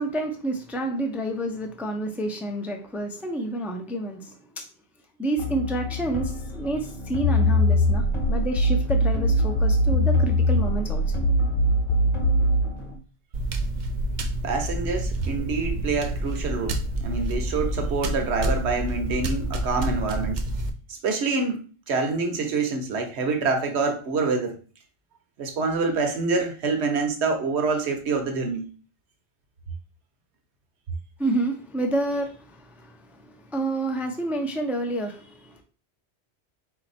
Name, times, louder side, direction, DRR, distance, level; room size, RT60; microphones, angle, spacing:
voice 1, 0.0-4.6 5.2-11.0 31.2-35.6, right 1 dB, ahead, 0.4 m, -29 dB
sound 1, 5.4-13.0, left 4 dB, 25° left, 1.0 m, -33 dB
sound 2, 7.2-12.7, equal, 85° left, 0.9 m, -21 dB
sound 3, 13.3-20.7, right 1 dB, 55° right, 0.6 m, -28 dB
voice 2, 14.4-20.4 20.9-24.6 25.4-28.7, right 4 dB, 70° right, 1.1 m, -26 dB
4.3 x 2.7 x 4.2 m
omnidirectional pair, 1.2 m